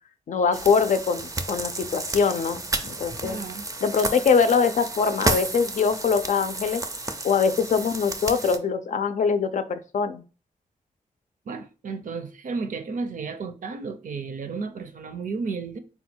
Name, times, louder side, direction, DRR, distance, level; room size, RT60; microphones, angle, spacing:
voice 1, 0.3-3.4 3.8-6.8 7.2-10.2, left 5 dB, 65° left, 0.5 m, -23 dB
sound 1, 0.5-8.6, right 2 dB, 25° right, 0.4 m, -32 dB
voice 2, 3.2-3.7 11.5-15.8, right 4 dB, 70° right, 0.6 m, -33 dB
4.1 x 2.3 x 4.4 m
wide cardioid pair, 130°, 14 cm